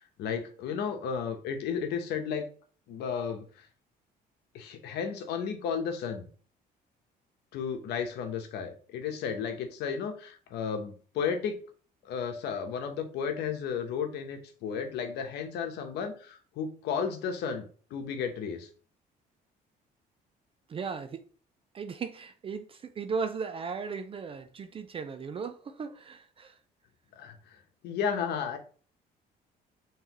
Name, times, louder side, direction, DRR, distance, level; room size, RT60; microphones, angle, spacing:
voice 1, 0.2-2.5 2.9-3.7 4.5-6.3 7.5-11.6 12.0-18.7 27.1-28.6, left 6 dB, 80° left, 1.0 m, -33 dB
voice 2, 20.7-21.2 21.7-26.6, right 5 dB, 35° right, 0.4 m, -36 dB
5.6 x 3.2 x 3.0 m
cardioid pair, 110°, 17 cm